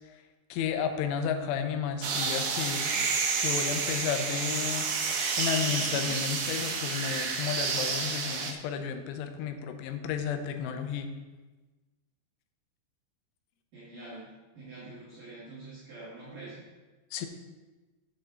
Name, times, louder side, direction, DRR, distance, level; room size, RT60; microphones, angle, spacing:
voice 1, 0.5-3.1 3.4-11.1 17.1-17.3, left 7 dB, 85° left, 7 dB, 3.2 m, -32 dB
sound 1, 2.0-8.5, right 5 dB, 75° right, 2.4 m, -30 dB
voice 2, 13.7-16.6, right 2 dB, 55° right, -9 dB, 3.0 m, -45 dB
11.0 x 7.5 x 3.8 m, 1.2 s
omnidirectional pair, 5.5 m